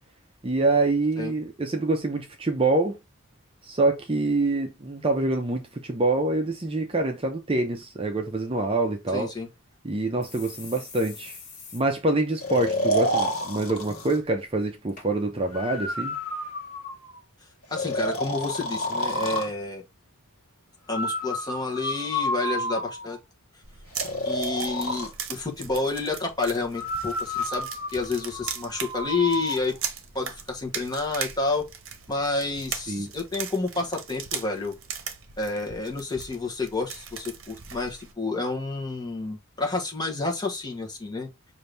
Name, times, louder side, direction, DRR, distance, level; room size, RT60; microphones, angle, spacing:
voice 1, 0.4-3.0 3.6-9.3 9.8-11.4 11.7-16.2 32.9-33.1, right 2 dB, 25° right, 0.6 m, -25 dB
voice 2, 9.1-9.5 17.7-19.8 20.9-23.2 24.2-29.7 30.1-31.6 32.1-34.7 35.4-41.3, left 3 dB, 20° left, 1.1 m, -29 dB
sound 1, 9.7-9.8 10.2-11.8 12.2-12.3 12.5-13.0 13.3-13.6 14.3-14.4 15.0-15.1 15.8-15.9, left 5 dB, 35° left, 1.8 m, -44 dB
Breathing, 12.4-14.2 15.5-17.2 17.7-19.5 20.9-23.2 23.9-25.1 26.7-29.6, equal, 85° left, 1.2 m, -30 dB
sound 2, 23.6-38.1, right 7 dB, 65° right, 0.8 m, -39 dB
5.5 x 2.7 x 3.3 m
head